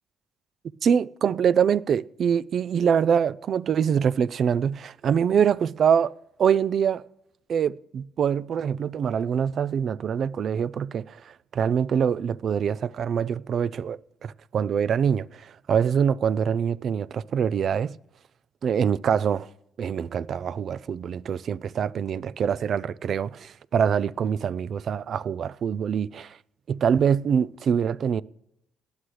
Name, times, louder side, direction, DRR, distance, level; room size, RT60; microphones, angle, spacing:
voice 1, 0.8-6.1 6.4-7.0 7.5-17.9 18.6-19.5 19.8-26.4 26.7-28.2, right 7 dB, 60° right, 0.4 m, -24 dB
19.0 x 11.5 x 3.3 m
cardioid pair, 90°, 0 cm